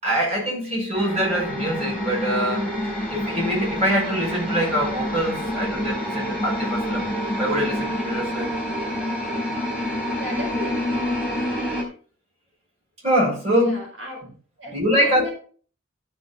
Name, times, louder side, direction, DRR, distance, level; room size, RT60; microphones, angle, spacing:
voice 1, 0.0-2.7 3.1-8.5 13.0-13.8 14.7-15.3, equal, 35° right, -3 dB, 6.1 m, -24 dB
sound 1, 0.9-11.8, equal, 5° right, 3.7 m, -27 dB
voice 2, 10.2-11.0 13.6-14.2 14.6-15.3, left 1 dB, 70° right, -1 dB, 4.5 m, -35 dB
13.0 x 6.0 x 4.2 m, 0.43 s
head